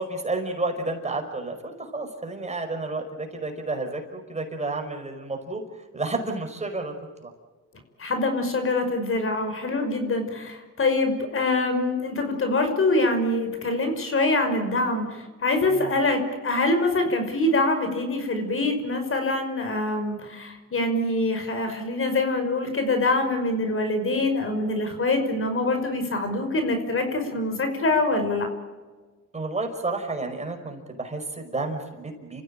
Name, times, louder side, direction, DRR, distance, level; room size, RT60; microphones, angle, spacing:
voice 1, 0.0-5.6 5.9-6.9 7.2-7.3 15.6-16.0 29.3-32.4, right 2 dB, 20° right, 4 dB, 5.3 m, -31 dB
voice 2, 8.0-28.5, left 2 dB, 45° left, 6 dB, 5.5 m, -24 dB
29.0 x 15.5 x 8.9 m, 1.3 s
cardioid pair, 90°, 30 cm